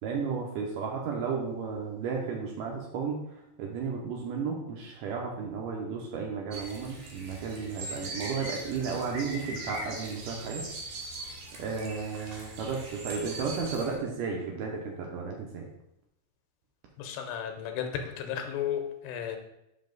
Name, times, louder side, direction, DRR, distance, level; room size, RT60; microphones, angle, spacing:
voice 1, 0.0-10.7 11.6-15.7, right 5 dB, 85° right, -1 dB, 1.9 m, -33 dB
sound 1, 6.5-13.9, right 2 dB, 65° right, 2.0 m, -41 dB
voice 2, 17.0-19.4, left 9 dB, 90° left, 5 dB, 2.7 m, -34 dB
5.7 x 5.5 x 3.9 m, 0.85 s
omnidirectional pair, 4.6 m